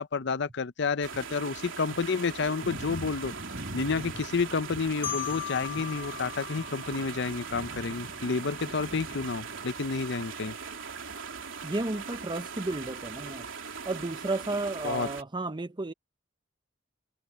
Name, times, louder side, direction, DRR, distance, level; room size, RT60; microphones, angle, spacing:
voice 1, 0.0-3.3 3.7-10.5 14.8-15.1, left 4 dB, 65° left, 0.7 m, -30 dB
sound 1, 1.0-15.2, right 5 dB, 85° right, 3.1 m, -40 dB
Thunder, 2.6-9.6, equal, 55° right, 4.2 m, -44 dB
Marimba xylophone, 5.0-7.9, left 12 dB, 40° left, 1.2 m, -38 dB
voice 2, 11.6-13.5 13.8-15.9, right 2 dB, 25° right, 0.7 m, -32 dB
head